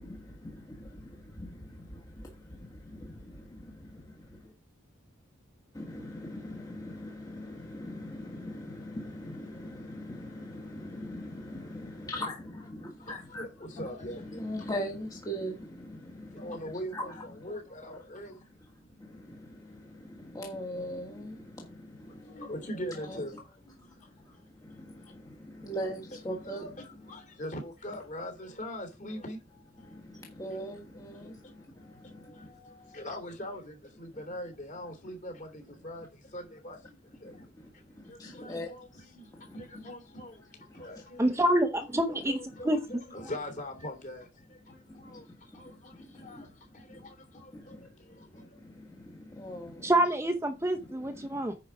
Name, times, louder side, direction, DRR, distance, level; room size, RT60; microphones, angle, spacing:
voice 1, 5.8-12.4 12.8-13.4 14.2-15.6 16.9-17.0 20.3-21.3 22.9-23.2 25.6-26.6 30.4-31.3 38.5-38.7 49.4-49.7, equal, 20° left, 1.4 m, -38 dB
voice 2, 13.0-14.8 16.3-18.4 22.1-24.4 25.0-25.2 25.5-25.7 26.4-30.0 31.2-37.4 37.7-41.6 41.9-48.6, equal, 40° left, 2.9 m, -43 dB
voice 3, 41.2-42.3 42.6-42.8 49.8-51.5, right 1 dB, 15° right, 0.8 m, -26 dB
9.6 x 4.7 x 5.7 m
head